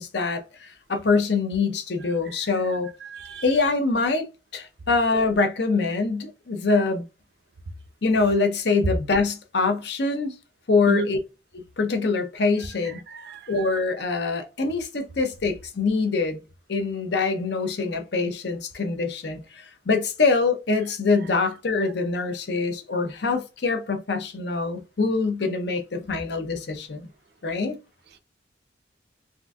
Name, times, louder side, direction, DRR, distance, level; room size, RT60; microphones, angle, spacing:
voice 1, 0.0-2.9 3.4-4.3 4.5-7.0 8.0-10.3 10.7-11.2 11.8-13.0 13.5-16.4 16.7-27.1 27.4-27.8, left 4 dB, 65° left, 0.6 m, -24 dB
voice 2, 3.1-3.4 10.9-11.1 13.1-13.7, right 2 dB, 60° right, 0.5 m, -31 dB
3.7 x 2.5 x 2.2 m
head